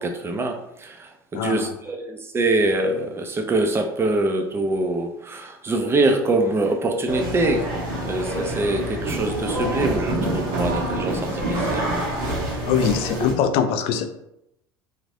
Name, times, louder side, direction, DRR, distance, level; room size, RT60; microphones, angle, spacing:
voice 1, 0.0-7.7 8.0-11.9, right 2 dB, 20° right, 5 dB, 0.5 m, -24 dB
voice 2, 1.3-1.7 12.7-14.1, left 8 dB, 55° left, 9 dB, 0.4 m, -22 dB
sound 1, 7.1-13.3, right 1 dB, 75° right, 1.1 m, -26 dB
3.0 x 2.7 x 2.5 m, 0.81 s
hypercardioid pair, 75°, 12 cm